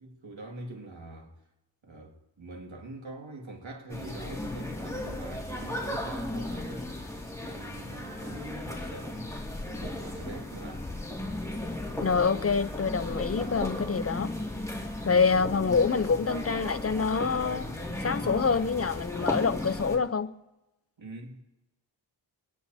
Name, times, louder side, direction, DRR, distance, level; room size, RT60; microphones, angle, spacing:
voice 1, 0.0-1.3 1.8-6.9 7.4-9.4 9.7-10.9 21.0-21.4, right 2 dB, 80° right, 2.3 m, -44 dB
sound 1, 3.9-20.0, left 1 dB, 5° left, 2.4 m, -35 dB
sound 2, 11.0-19.0, equal, 10° right, 3.3 m, -53 dB
voice 2, 12.0-14.3 15.1-17.7 18.0-20.3, left 5 dB, 30° left, 0.7 m, -26 dB
29.0 x 10.5 x 2.8 m
cardioid pair, 45°, 45 cm